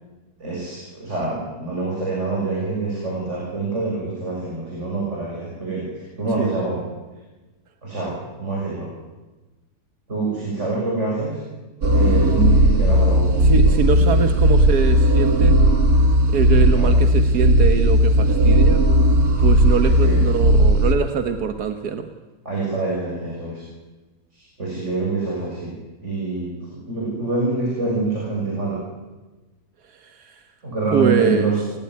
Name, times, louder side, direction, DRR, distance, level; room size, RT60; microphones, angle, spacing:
voice 1, 0.4-6.8 7.8-8.9 10.1-11.4 11.9-14.2 16.7-16.9 19.8-20.2 22.5-23.6 24.3-25.8 26.0-28.8 30.6-31.8, right 3 dB, 50° right, -3 dB, 7.2 m, -26 dB
sound 1, 11.8-21.0, right 1 dB, 75° right, 2.4 m, -16 dB
voice 2, 13.4-15.6 16.3-18.9 19.4-22.1 29.8-30.5 30.9-31.5, right 6 dB, 90° right, 7 dB, 1.8 m, -23 dB
29.0 x 16.5 x 9.7 m, 1.2 s
omnidirectional pair, 1.6 m